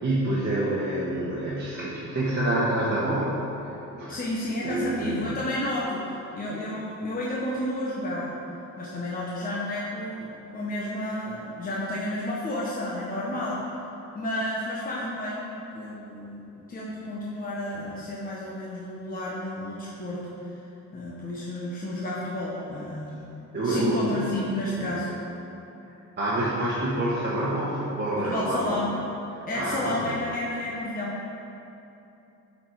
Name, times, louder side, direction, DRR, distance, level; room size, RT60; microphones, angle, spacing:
voice 1, 0.0-4.2 4.6-5.3 23.5-24.2 24.7-24.9 26.2-28.8 29.5-30.2, right 1 dB, 35° right, -8 dB, 1.3 m, -27 dB
voice 2, 4.1-8.3 8.8-13.7 14.1-20.6 20.9-23.3 23.6-25.1 28.2-29.0 29.5-31.2, left 1 dB, 30° left, -6 dB, 1.0 m, -31 dB
7.5 x 4.3 x 4.7 m, 2.9 s
cardioid pair, 90°, 30 cm